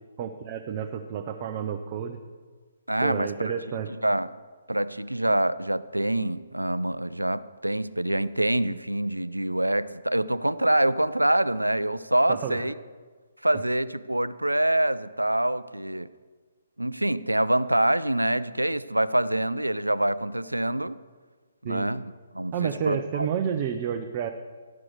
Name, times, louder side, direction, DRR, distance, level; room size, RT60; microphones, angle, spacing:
voice 1, 0.2-2.2 3.0-3.9 12.3-12.6 13.5-13.6 21.6-21.9 22.5-24.3, right 8 dB, 35° right, 4 dB, 0.5 m, -30 dB
voice 2, 2.9-3.5 4.0-4.3 4.7-12.7 13.4-16.1 16.8-21.0 21.6-22.0 22.3-23.3, right 1 dB, 90° right, 16 dB, 0.3 m, -25 dB
12.0 x 6.1 x 4.8 m, 1.4 s
figure-of-eight pair, 130°, 0 cm